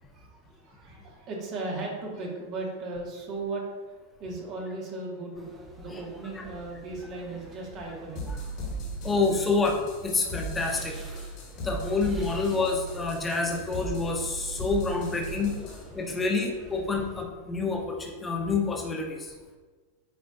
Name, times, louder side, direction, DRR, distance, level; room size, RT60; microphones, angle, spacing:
voice 1, 0.1-9.0 11.5-11.7 13.6-13.8 15.3-15.9 16.3-16.4, right 2 dB, 40° right, -2 dB, 2.0 m, -38 dB
sound 1, 5.3-17.3, equal, 10° right, 1.3 m, -48 dB
sound 2, 8.2-15.9, right 2 dB, 40° left, 1.9 m, -37 dB
voice 2, 9.0-10.9 11.6-15.5 15.9-19.3, left 3 dB, 15° left, 0 dB, 1.3 m, -28 dB
10.0 x 5.0 x 2.7 m, 1.4 s
figure-of-eight pair, 90°, 0 cm